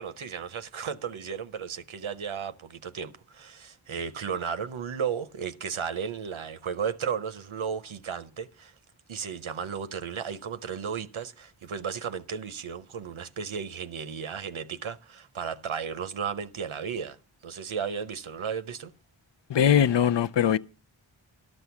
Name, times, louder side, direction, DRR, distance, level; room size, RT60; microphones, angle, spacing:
voice 1, 0.0-8.7 9.1-17.2 17.4-18.9, right 7 dB, 85° right, 0.7 m, -34 dB
voice 2, 19.5-20.6, left 9 dB, 65° left, 0.5 m, -21 dB
12.0 x 6.2 x 7.0 m
wide cardioid pair, 55°, 47 cm